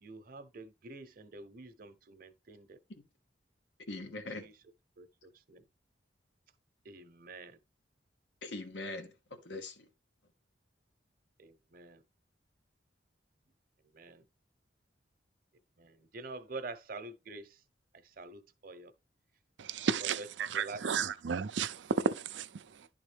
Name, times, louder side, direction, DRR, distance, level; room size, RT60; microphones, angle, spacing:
voice 1, 0.0-2.8 4.0-4.5 5.0-5.6 6.8-7.6 11.4-12.0 13.9-14.2 15.8-17.6 17.9-18.9 20.2-20.3 20.5-21.0, right 3 dB, 50° right, 0.8 m, -47 dB
voice 2, 3.9-4.5 8.4-9.9, left 2 dB, 70° left, 1.1 m, -42 dB
voice 3, 19.6-22.9, right 6 dB, 75° right, 0.5 m, -33 dB
11.0 x 3.7 x 3.4 m
head